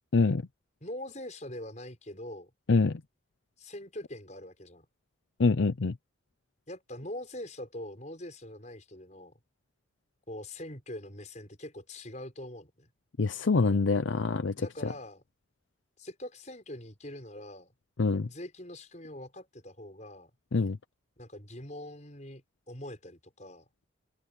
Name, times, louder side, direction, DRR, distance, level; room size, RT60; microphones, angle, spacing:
voice 1, 0.8-2.5 3.6-4.9 6.7-9.4 10.3-12.9 14.6-15.2 16.0-17.7 18.3-20.3 21.2-23.7, left 1 dB, 35° left, 6.4 m, -43 dB
voice 2, 5.4-5.9 13.2-14.5 18.0-18.3 20.5-20.8, left 4 dB, 75° left, 0.6 m, -25 dB
head